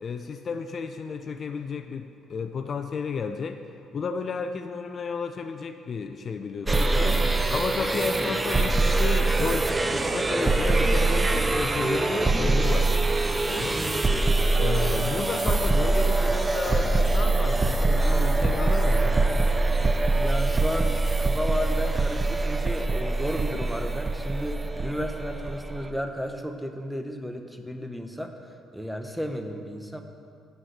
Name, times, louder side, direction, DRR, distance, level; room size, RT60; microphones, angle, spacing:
voice 1, 0.0-3.6 3.9-12.9 13.5-13.8 14.6-19.2, left 5 dB, 50° left, 7 dB, 0.5 m, -32 dB
sound 1, 6.7-25.9, right 2 dB, 20° right, 0.7 m, -23 dB
voice 2, 13.7-14.1 20.1-28.3 28.7-30.0, equal, ahead, 5 dB, 1.0 m, -33 dB
8.0 x 7.4 x 6.7 m, 2.3 s
supercardioid pair, 70°, 0 cm